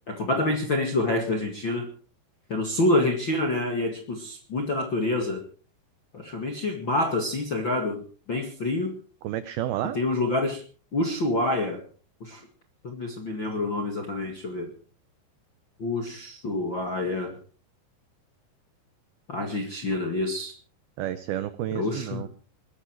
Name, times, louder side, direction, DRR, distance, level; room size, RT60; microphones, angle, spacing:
voice 1, 0.1-1.9 2.5-5.4 6.1-8.9 9.9-10.6 10.9-11.8 12.2-12.5 12.8-14.7 15.8-17.3 19.3-20.5 21.7-22.2, left 2 dB, 50° left, 3 dB, 1.4 m, -27 dB
voice 2, 9.2-10.0 21.0-22.3, right 12 dB, 85° right, 13 dB, 2.1 m, -30 dB
21.0 x 14.0 x 4.6 m, 0.40 s
omnidirectional pair, 5.5 m